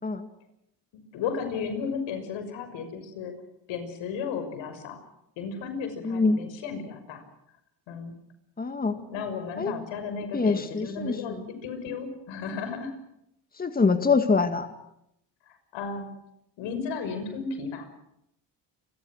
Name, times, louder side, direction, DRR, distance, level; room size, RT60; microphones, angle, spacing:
voice 1, 0.9-3.3 3.7-5.0 5.4-7.2 7.9-8.1 8.9-12.9 15.5-16.1 16.6-17.9, left 5 dB, 85° left, 8 dB, 6.2 m, -34 dB
voice 2, 6.1-6.4 8.6-9.0 9.6-9.7 10.3-11.1 13.6-14.7, left 4 dB, 20° left, 7 dB, 1.9 m, -24 dB
29.0 x 24.0 x 6.4 m, 0.80 s
cardioid pair, 120°, 45 cm